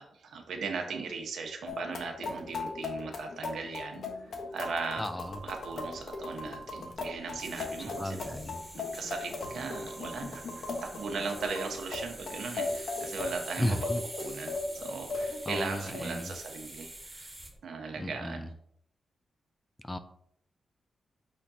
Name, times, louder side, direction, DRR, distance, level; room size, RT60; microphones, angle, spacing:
voice 1, 0.0-4.0 4.5-5.1 5.4-8.4 8.7-13.9 14.2-17.3 17.6-18.5, right 4 dB, 80° right, 3 dB, 1.2 m, -38 dB
sound 1, 1.7-16.0, left 3 dB, 70° left, 1.1 m, -38 dB
voice 2, 5.0-5.4 8.0-8.6 13.6-14.0 15.5-16.3 18.0-18.5 19.8-20.0, left 1 dB, 15° left, 9 dB, 0.6 m, -34 dB
sound 2, 5.2-17.5, right 1 dB, 15° right, 2.1 m, -46 dB
8.7 x 4.3 x 2.8 m, 0.71 s
cardioid pair, 95°, 0 cm